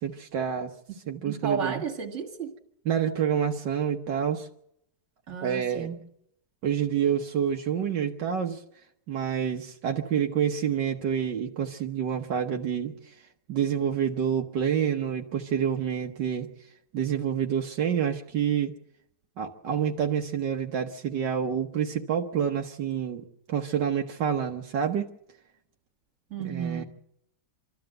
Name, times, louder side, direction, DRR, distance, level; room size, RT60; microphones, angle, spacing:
voice 1, 0.0-0.7 1.1-1.8 2.9-4.5 5.4-5.9 6.6-8.6 9.1-13.1 13.5-16.5 16.9-18.7 19.4-25.1 26.4-26.8, right 8 dB, 75° right, 1.7 m, -28 dB
voice 2, 1.2-2.5 5.3-6.1 26.3-26.8, right 6 dB, 40° right, 2.4 m, -33 dB
26.5 x 13.0 x 7.7 m
omnidirectional pair, 1.9 m